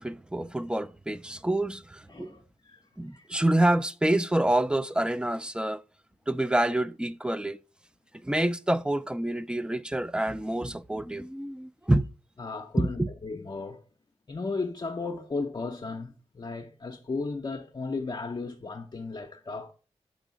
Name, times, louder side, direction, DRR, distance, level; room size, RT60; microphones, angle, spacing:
voice 1, 0.0-2.3 3.0-5.8 6.3-7.6 8.2-12.1 12.8-13.1, right 1 dB, 10° right, 0.3 m, -27 dB
voice 2, 2.1-2.8 3.1-3.3 12.4-13.8 14.3-19.7, left 3 dB, 40° left, 0.6 m, -35 dB
6.2 x 3.6 x 5.0 m
cardioid pair, 70°, 12 cm